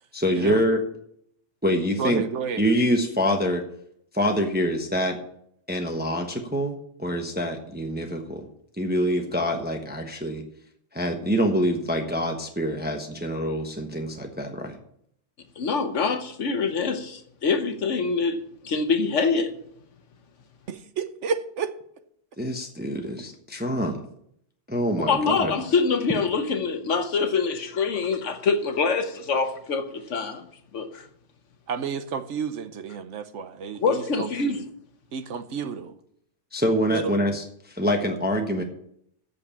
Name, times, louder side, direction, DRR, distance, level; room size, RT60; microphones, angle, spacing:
voice 1, 0.1-0.8 1.6-2.2 2.6-3.6 4.1-5.2 5.7-8.5 8.8-10.4 10.9-14.8 22.4-24.0 24.7-25.5 36.5-38.6, equal, 10° right, 1.0 m, -25 dB
voice 2, 2.0-2.6 20.7-21.7 31.7-34.5 35.1-35.9 36.9-37.1, right 6 dB, 75° right, 1.2 m, -31 dB
voice 3, 15.6-18.4 18.6-19.5 25.1-30.5 30.7-31.0 33.8-34.7, left 4 dB, 75° left, 1.3 m, -25 dB
8.5 x 6.9 x 8.5 m
omnidirectional pair, 1.3 m